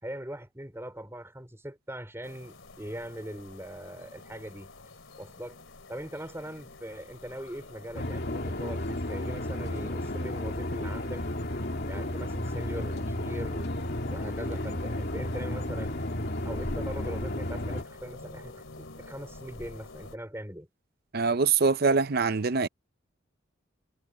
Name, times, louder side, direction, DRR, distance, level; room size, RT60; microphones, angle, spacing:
voice 1, 0.0-4.7 5.2-5.6 5.9-11.2 11.9-16.0 16.4-20.7, right 1 dB, 10° right, 4.6 m, -41 dB
sound 1, 2.2-20.2, left 2 dB, 70° left, 2.8 m, -47 dB
sound 2, 7.9-17.8, left 1 dB, 55° left, 2.5 m, -33 dB
voice 2, 21.1-22.7, right 4 dB, 50° right, 0.6 m, -24 dB
head